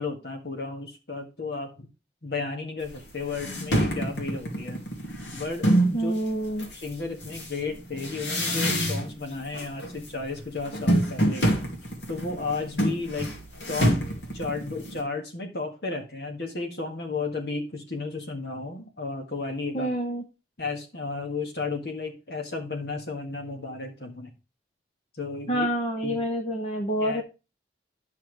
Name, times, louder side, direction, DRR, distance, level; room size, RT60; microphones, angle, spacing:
voice 1, 0.0-1.9 2.2-4.8 5.3-5.7 6.0-6.1 6.7-11.6 12.1-13.3 13.7-14.0 14.3-19.9 20.6-24.3 25.2-25.7 26.0-26.2 27.0-27.2, left 3 dB, 60° left, 4 dB, 1.7 m, -33 dB
sound 1, 2.8-2.9 3.3-6.0 6.6-9.3 9.5-10.1 10.3-15.0, equal, 80° left, 2.2 m, -26 dB
voice 2, 5.9-6.7 19.7-20.2 25.5-27.2, equal, 35° left, 3 dB, 0.8 m, -27 dB
10.0 x 5.8 x 3.3 m, 0.30 s
head